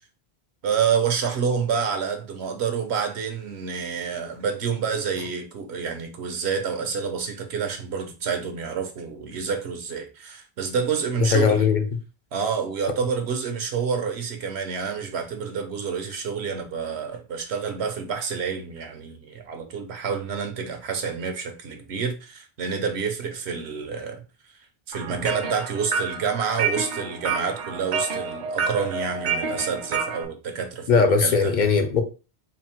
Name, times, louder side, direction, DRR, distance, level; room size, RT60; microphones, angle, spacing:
voice 1, 0.6-11.7 12.3-24.2 24.9-31.5, right 6 dB, 85° right, 1.1 m, -28 dB
voice 2, 11.3-11.8 30.9-32.0, left 5 dB, 55° left, 0.6 m, -19 dB
sound 1, 24.9-30.2, right 5 dB, 55° right, 0.6 m, -29 dB
4.2 x 2.0 x 4.3 m
omnidirectional pair, 1.1 m